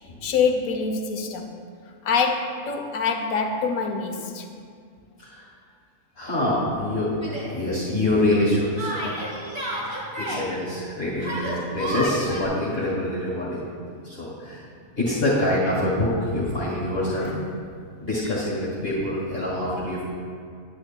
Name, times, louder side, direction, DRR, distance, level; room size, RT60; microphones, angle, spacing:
voice 1, 0.2-1.6 2.0-4.5 9.8-9.9 10.2-10.4 11.2-11.3 16.7-17.5 18.8-18.9, left 5 dB, 75° left, 5 dB, 1.1 m, -26 dB
voice 2, 6.2-7.1 7.4-9.6 10.2-13.6 14.0-14.6 15.0-17.3 18.0-20.0, left 1 dB, 45° left, -9 dB, 1.9 m, -25 dB
Yell, 7.2-7.5 8.8-10.5 11.2-12.5, right 1 dB, 45° right, 2.1 m, -31 dB
10.0 x 9.5 x 2.2 m, 2.2 s
omnidirectional pair, 1.5 m